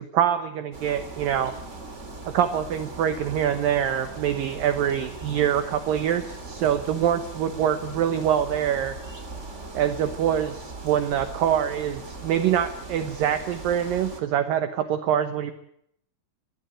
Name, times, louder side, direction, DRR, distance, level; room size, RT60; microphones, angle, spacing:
voice 1, 0.0-1.5 2.3-9.0 9.7-15.5, right 9 dB, 75° right, 9 dB, 2.1 m, -25 dB
sound 1, 0.7-14.2, right 2 dB, 20° right, 2.4 m, -39 dB
23.5 x 15.5 x 9.0 m, 0.73 s
omnidirectional pair, 5.4 m